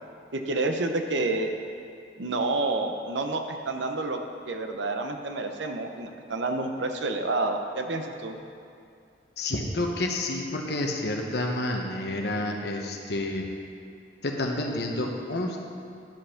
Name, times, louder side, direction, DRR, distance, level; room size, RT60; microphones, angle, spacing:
voice 1, 0.3-1.5 2.2-4.2 4.5-8.4, right 2 dB, 80° right, 5 dB, 0.8 m, -29 dB
voice 2, 9.4-13.5 14.2-15.6, left 1 dB, 65° left, 1 dB, 1.0 m, -29 dB
10.5 x 5.5 x 5.8 m, 2.4 s
head